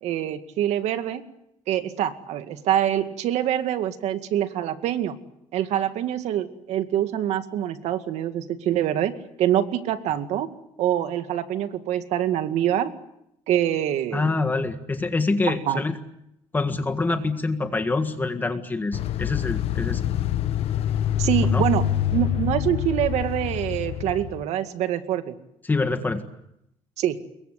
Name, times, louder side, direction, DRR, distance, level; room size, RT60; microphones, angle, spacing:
voice 1, 0.0-1.3 1.7-5.2 5.5-10.5 10.8-12.9 13.5-14.3 15.5-15.8 21.2-21.8 22.1-25.4 27.0-27.2, right 11 dB, 70° right, 9 dB, 2.1 m, -25 dB
voice 2, 14.1-16.0 16.5-20.0 21.5-21.6 25.6-26.2, left 3 dB, 15° left, 7 dB, 1.7 m, -25 dB
sound 1, 18.9-24.4, left 10 dB, 60° left, 1.1 m, -25 dB
27.0 x 22.5 x 8.3 m, 0.79 s
cardioid pair, 150°, 12 cm